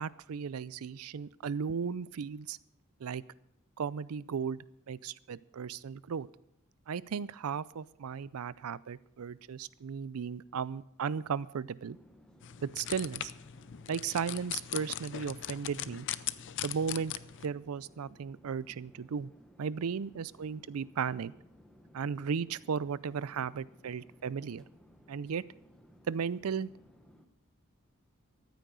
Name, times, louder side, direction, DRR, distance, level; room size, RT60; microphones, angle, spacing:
voice 1, 0.0-2.6 3.0-3.2 3.8-4.6 4.9-6.3 6.9-12.0 12.6-13.3 13.9-16.1 16.6-17.1 17.4-19.3 19.6-21.3 21.9-24.6 25.1-25.4 26.1-26.7, right 6 dB, 85° right, 20 dB, 0.4 m, -35 dB
Chatter / Fixed-wing aircraft airplane, 11.8-27.3, equal, 5° left, 1.1 m, -60 dB
sound 1, 12.4-17.5, left 12 dB, 60° left, 0.5 m, -40 dB
14.0 x 9.2 x 6.8 m, 0.79 s
head